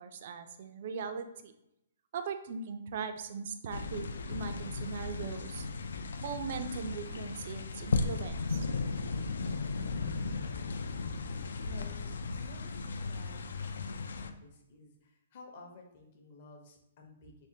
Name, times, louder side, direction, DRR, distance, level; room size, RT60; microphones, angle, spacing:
voice 1, 0.0-1.5 2.1-5.7 6.2-8.7, right 6 dB, 45° right, 8 dB, 0.3 m, -40 dB
sound 1, 3.7-14.3, left 4 dB, 85° left, 0.3 m, -36 dB
voice 2, 11.6-17.3, left 2 dB, 40° left, 2 dB, 0.7 m, -53 dB
3.4 x 3.1 x 2.7 m, 0.83 s
hypercardioid pair, 165°, 0 cm